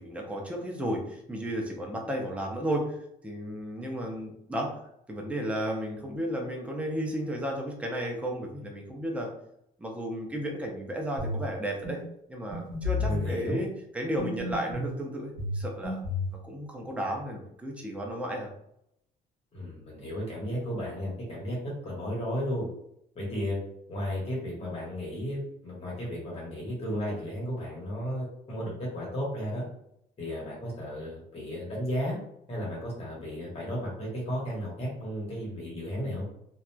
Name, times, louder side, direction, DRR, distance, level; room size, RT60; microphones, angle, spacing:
voice 1, 0.0-3.0 3.2-4.8 5.1-9.3 9.8-12.0 12.3-13.7 13.9-16.0 16.4-18.5, equal, 5° right, 0 dB, 0.6 m, -33 dB
sound 1, 11.2-11.4 11.8-12.0 12.5-13.3 14.2-14.9 15.4-16.3, left 2 dB, 55° right, 1.2 m, -32 dB
voice 2, 12.9-13.6 19.5-22.7 23.1-23.6 23.9-29.6 30.2-32.2 32.5-36.3, equal, 35° left, -4 dB, 1.2 m, -34 dB
2.8 x 2.4 x 2.2 m, 0.75 s
cardioid pair, 110°, 17 cm